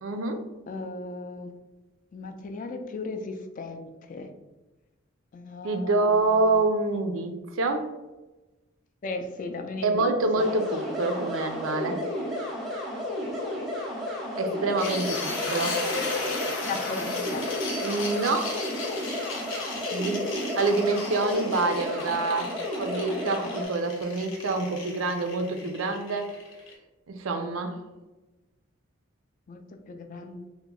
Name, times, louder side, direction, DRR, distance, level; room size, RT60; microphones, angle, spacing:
voice 1, 0.0-0.5 5.6-7.9 9.8-12.0 14.4-15.8 17.8-18.7 19.9-26.4 27.1-27.8, right 3 dB, 80° right, 7 dB, 0.4 m, -27 dB
voice 2, 0.7-1.5 2.1-4.3 5.3-6.5 9.0-10.1 10.4-10.5 15.5-15.7 16.6-17.5 29.5-29.6 29.9-30.5, left 3 dB, 40° left, 6 dB, 0.3 m, -36 dB
sound 1, 10.4-23.7, left 1 dB, ahead, 0.7 m, -33 dB
sound 2, 14.8-26.7, left 3 dB, 75° left, 0.7 m, -35 dB
2.9 x 2.1 x 3.7 m, 1.1 s
head